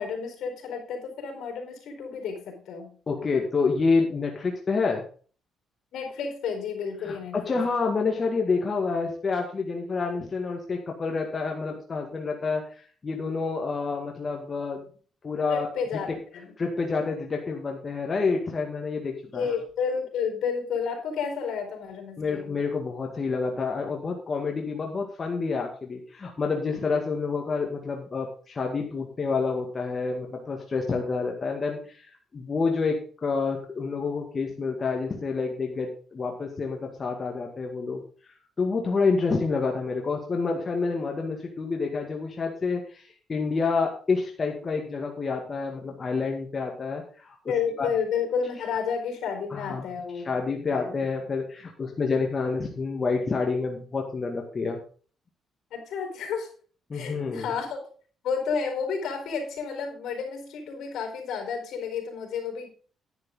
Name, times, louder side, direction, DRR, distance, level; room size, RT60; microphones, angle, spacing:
voice 1, 0.0-2.9 5.9-7.4 15.5-16.5 19.2-22.5 47.5-50.3 50.7-50.9 55.7-56.5 56.9-57.8 58.2-62.7, left 6 dB, 75° left, 3 dB, 4.5 m, -31 dB
voice 2, 3.1-5.0 7.0-14.8 15.2-15.7 16.1-16.2 16.6-19.5 22.2-38.0 38.6-47.4 47.8-47.9 49.5-49.9 50.2-54.8 56.9-57.5, left 4 dB, 35° left, 1 dB, 2.0 m, -28 dB
10.5 x 10.0 x 3.8 m, 0.41 s
cardioid pair, 90°, 0 cm